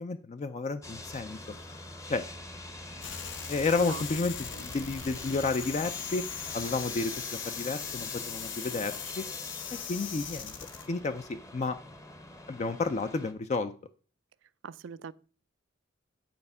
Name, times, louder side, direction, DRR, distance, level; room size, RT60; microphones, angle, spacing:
voice 1, 0.0-1.6 2.1-2.3 3.5-6.2 6.5-9.3 9.7-10.5 10.9-11.8 12.5-13.7, left 3 dB, 35° left, 0.4 m, -31 dB
sound 1, 0.8-13.3, left 2 dB, 15° left, 0.8 m, -44 dB
sound 2, 3.0-10.9, left 7 dB, 80° left, 1.0 m, -39 dB
voice 2, 14.6-15.1, right 6 dB, 75° right, 0.4 m, -41 dB
9.5 x 4.3 x 5.4 m
head